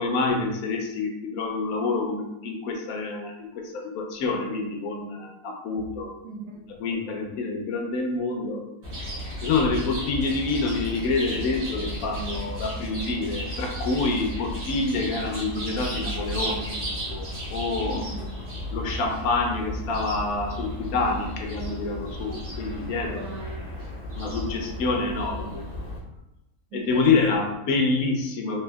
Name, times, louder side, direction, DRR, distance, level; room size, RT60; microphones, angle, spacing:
voice 1, 0.0-6.1 6.8-8.6 9.4-16.7 17.1-18.0 18.7-23.2 24.2-25.6 26.7-28.6, left 3 dB, 70° left, 2 dB, 1.0 m, -27 dB
voice 2, 6.2-6.6 17.8-18.4 23.0-23.7 26.7-27.4, right 2 dB, 75° right, 0 dB, 1.1 m, -39 dB
Chirp tweet, 8.8-26.0, equal, 55° right, 1.9 m, -34 dB
4.3 x 2.6 x 2.2 m, 0.91 s
omnidirectional pair, 1.7 m